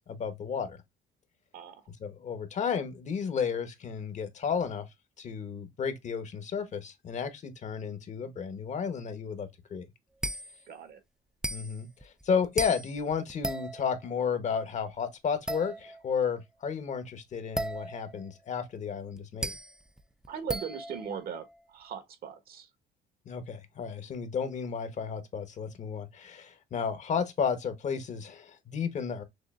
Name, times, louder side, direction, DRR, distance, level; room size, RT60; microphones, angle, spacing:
voice 1, 0.1-0.8 2.0-4.8 5.2-9.9 11.5-19.5 23.3-29.2, left 6 dB, 45° left, 1.0 m, -33 dB
sound 1, 10.2-10.6 11.4-14.1 15.5-16.2 17.5-18.3 19.2-21.5, right 1 dB, 5° right, 0.3 m, -36 dB
voice 2, 10.7-11.0 20.3-22.7, right 7 dB, 60° right, 1.2 m, -39 dB
6.3 x 2.5 x 2.3 m
cardioid pair, 110°, 17 cm